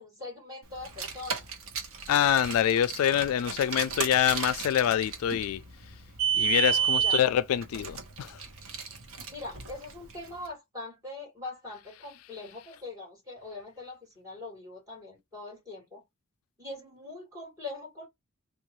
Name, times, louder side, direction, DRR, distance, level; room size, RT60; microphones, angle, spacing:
voice 1, 0.0-1.5 6.4-7.2 8.8-9.0 9.3-16.0 16.6-18.1, left 2 dB, 15° right, 2.6 m, -42 dB
Car, 0.8-10.3, right 8 dB, 70° right, 0.8 m, -32 dB
voice 2, 2.1-5.6 6.3-8.4, left 10 dB, 75° left, 0.3 m, -25 dB
3.7 x 2.4 x 3.0 m
head